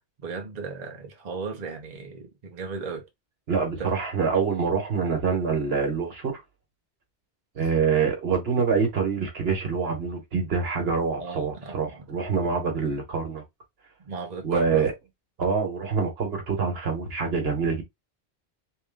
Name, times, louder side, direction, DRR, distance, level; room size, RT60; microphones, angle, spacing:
voice 1, 0.0-3.1 3.8-3.9 7.6-7.7 11.2-12.1 14.0-14.9, right 4 dB, 45° right, 0.8 m, -36 dB
voice 2, 3.5-6.4 7.5-13.4 14.4-14.9 15.4-17.8, right 5 dB, 70° right, 1.4 m, -25 dB
3.3 x 2.7 x 3.5 m
omnidirectional pair, 1.1 m